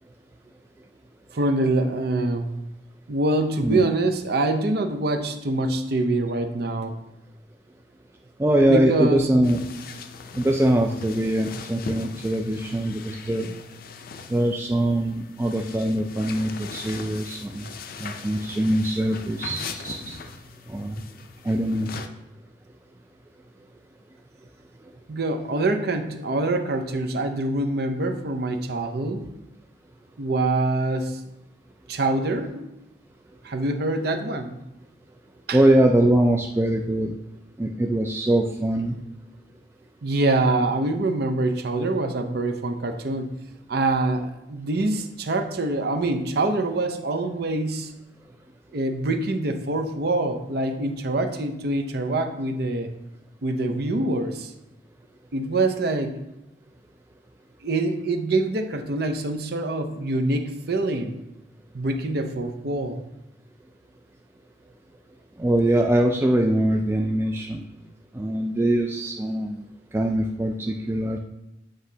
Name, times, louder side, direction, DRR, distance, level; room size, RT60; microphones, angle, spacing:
voice 1, 1.3-2.5 3.1-6.9 8.7-9.3 25.1-29.2 30.2-31.2 31.9-32.7 33.4-34.5 35.5-35.6 40.0-43.3 43.7-47.9 48.7-52.9 53.4-54.5 55.3-56.2 57.6-61.1 61.7-63.0, right 2 dB, 65° right, 6 dB, 0.7 m, -25 dB
voice 2, 8.4-9.6 10.3-13.5 14.3-17.7 18.0-20.2 20.7-21.0 21.4-21.9 35.5-37.2 37.6-39.0 65.4-67.6 68.1-69.6 69.9-71.2, right 1 dB, 15° right, 2 dB, 0.3 m, -22 dB
sound 1, 9.4-22.1, left 5 dB, 55° left, 0.5 m, -40 dB
7.9 x 5.0 x 2.8 m, 0.91 s
head